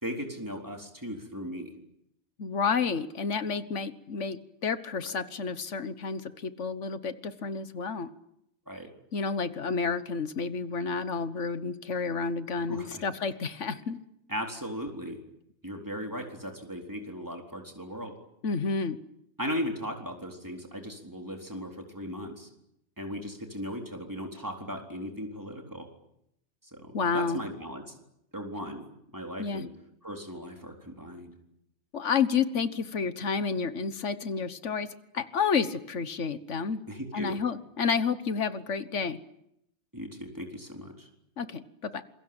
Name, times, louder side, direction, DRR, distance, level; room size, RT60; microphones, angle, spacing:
voice 1, 0.0-1.7 5.0-5.2 8.7-8.9 12.7-13.0 14.3-15.2 15.6-18.1 19.4-22.5 23.0-25.9 26.7-28.0 28.3-28.9 29.1-29.7 30.0-31.3 36.9-37.4 39.9-41.1, equal, 15° right, 2 dB, 4.1 m, -37 dB
voice 2, 2.4-8.1 9.1-14.0 18.4-19.0 26.9-27.4 29.4-29.7 31.9-34.9 35.1-36.8 37.1-39.2 41.4-42.0, left 5 dB, 85° left, 12 dB, 1.6 m, -30 dB
27.0 x 23.0 x 8.9 m, 0.78 s
omnidirectional pair, 1.2 m